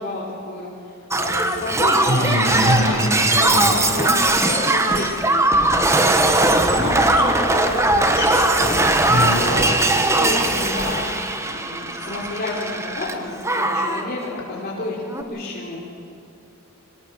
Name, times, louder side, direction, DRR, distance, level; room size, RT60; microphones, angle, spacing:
voice 1, 0.0-2.3 3.0-5.5 6.0-8.9 9.4-11.0 11.5-15.8, left 2 dB, 45° left, -7 dB, 3.5 m, -30 dB
Shatter, 1.1-13.1 13.4-14.0 15.1-15.2, right 2 dB, 15° right, 1.2 m, -19 dB
voice 2, 2.1-3.8 9.1-9.8, equal, 60° left, -2 dB, 6.8 m, -22 dB
25.0 x 18.5 x 6.9 m, 2.7 s
head